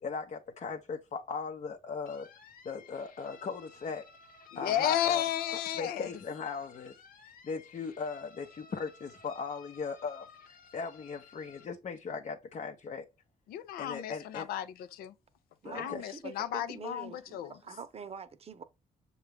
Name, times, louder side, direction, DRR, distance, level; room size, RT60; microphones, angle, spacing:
voice 1, 0.0-2.3 2.6-4.1 4.5-5.2 5.8-7.0 7.4-13.1 13.8-14.5 15.6-16.0, left 5 dB, 50° left, 0.7 m, -38 dB
sound 1, 2.1-11.7, left 5 dB, 70° left, 1.0 m, -56 dB
voice 2, 4.5-6.1 13.5-15.1 15.7-17.6, left 11 dB, 85° left, 0.5 m, -33 dB
voice 3, 15.6-18.6, right 5 dB, 40° right, 0.8 m, -45 dB
6.7 x 2.3 x 3.3 m
supercardioid pair, 65°, 15 cm